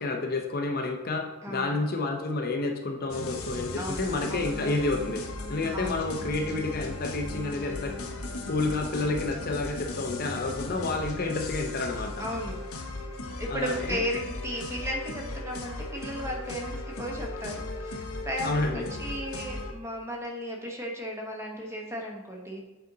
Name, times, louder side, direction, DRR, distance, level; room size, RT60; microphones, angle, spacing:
voice 1, 0.0-5.2 5.5-8.0 8.5-12.3 13.5-14.0 18.4-18.9, left 3 dB, 40° left, 3 dB, 0.6 m, -30 dB
voice 2, 1.4-1.8 3.8-4.5 5.7-6.0 12.2-12.9 13.4-22.6, equal, 10° right, 0 dB, 0.9 m, -35 dB
sound 1, 3.1-19.7, left 2 dB, 75° left, 0.9 m, -37 dB
8.2 x 4.2 x 3.8 m, 1.1 s
head